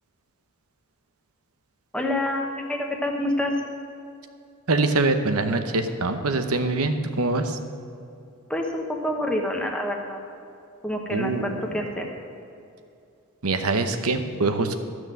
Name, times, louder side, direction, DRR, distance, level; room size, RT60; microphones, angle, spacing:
voice 1, 1.9-3.5 8.5-10.2 10.8-12.1, left 1 dB, 5° left, 1 dB, 1.1 m, -27 dB
voice 2, 4.7-7.4 11.1-11.5 13.4-14.8, right 3 dB, 80° right, 8 dB, 0.9 m, -24 dB
12.5 x 6.3 x 7.5 m, 2.6 s
head